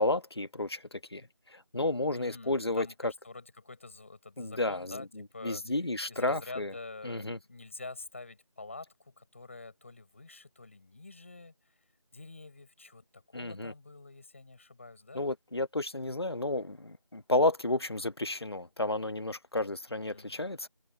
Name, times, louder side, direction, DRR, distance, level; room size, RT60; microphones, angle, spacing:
voice 1, 0.0-3.1 4.4-6.7 7.0-7.4 13.3-13.7 15.1-20.7, left 2 dB, 50° left, 1.4 m, -32 dB
voice 2, 2.1-5.6 6.1-11.5 12.1-15.3 20.1-20.5, left 3 dB, 25° left, 7.2 m, -47 dB
open air
figure-of-eight pair, 175°, 17 cm